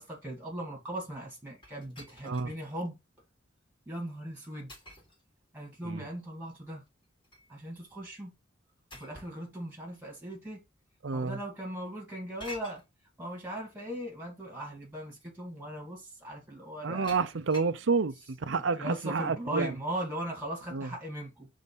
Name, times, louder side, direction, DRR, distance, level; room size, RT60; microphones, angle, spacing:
voice 1, 0.0-3.0 3.9-4.7 5.5-6.8 7.5-8.3 8.9-10.6 11.1-12.8 13.2-17.3 18.8-21.5, right 1 dB, 10° right, 2.4 m, -38 dB
sound 1, 1.6-2.5 3.1-3.2 4.7-5.2 6.9-7.5 8.9-9.4 10.4-10.5 12.4-12.8 14.2-14.3 14.8-15.1 17.0-17.8, left 1 dB, 25° left, 3.8 m, -48 dB
voice 2, 11.0-11.4 16.8-19.7 20.7-20.9, right 4 dB, 70° right, 0.6 m, -30 dB
5.3 x 3.8 x 5.5 m
head